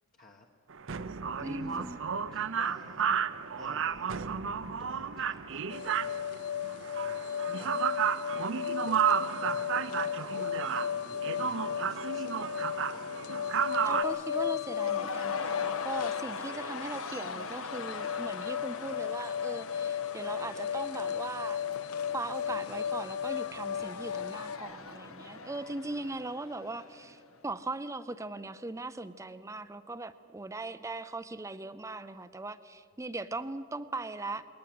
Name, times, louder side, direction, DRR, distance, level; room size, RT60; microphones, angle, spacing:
voice 1, 0.1-0.4 1.3-3.1 3.6-4.2 4.8-5.6 6.0-6.6 7.6-8.0 8.9-13.7, left 1 dB, 40° left, 1 dB, 1.2 m, -53 dB
sound 1, 0.7-14.0, right 7 dB, 60° right, 0.7 m, -32 dB
voice 2, 1.4-2.0 13.8-21.6 22.1-34.4, right 2 dB, 15° right, 12 dB, 0.5 m, -39 dB
sound 2, 5.7-24.6, left 9 dB, 85° left, 0.5 m, -35 dB
Cheering / Crowd, 10.5-27.4, left 4 dB, 65° left, 1.1 m, -43 dB
20.5 x 19.0 x 7.8 m, 2.5 s
head